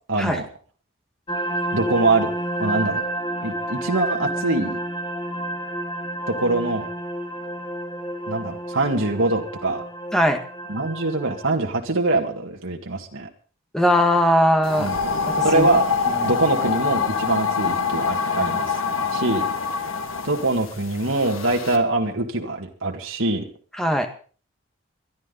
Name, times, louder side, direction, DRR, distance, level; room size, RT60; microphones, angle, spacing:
voice 1, 0.1-0.5 1.7-2.3 2.6-3.0 3.4-4.8 6.3-6.9 8.3-9.8 10.7-13.3 14.8-15.0 15.4-15.8 16.2-18.8 19.1-19.5 20.2-23.4, right 2 dB, 75° right, 2 dB, 1.9 m, -23 dB
sound 1, 1.3-11.5, right 1 dB, 25° left, 1.6 m, -30 dB
voice 2, 13.7-14.9 15.4-15.7 16.2-16.3 23.8-24.1, equal, 5° left, 5 dB, 1.5 m, -19 dB
sound 2, 14.6-21.8, left 5 dB, 80° left, 1.7 m, -25 dB
22.0 x 12.0 x 4.0 m, 0.40 s
head